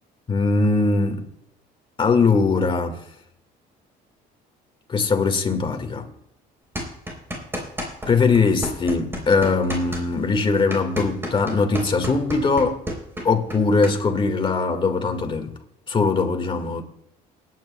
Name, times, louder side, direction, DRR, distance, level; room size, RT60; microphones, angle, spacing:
voice 1, 0.3-1.3 2.0-3.0 4.9-6.1 8.1-12.8 13.2-15.5 15.9-16.8, left 4 dB, 30° left, 1.8 m, -21 dB
sound 1, 6.7-8.1 8.3-13.9, equal, 15° right, 3.7 m, -31 dB
28.0 x 9.5 x 2.3 m
cardioid pair, 110°, 17 cm